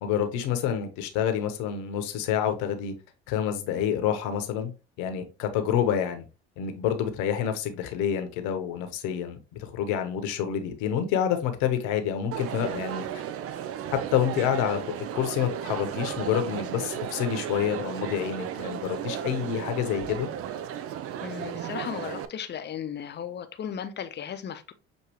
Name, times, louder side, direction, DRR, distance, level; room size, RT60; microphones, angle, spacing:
voice 1, 0.0-2.9 3.3-4.7 5.0-6.2 6.6-13.2 13.9-14.8 15.1-20.3, left 9 dB, 70° left, 1.0 m, -28 dB
Crowd, 12.3-22.2, right 9 dB, 50° right, 0.5 m, -34 dB
voice 2, 21.2-24.7, left 8 dB, 35° left, 0.7 m, -36 dB
6.3 x 2.6 x 3.0 m
hypercardioid pair, 70°, 30 cm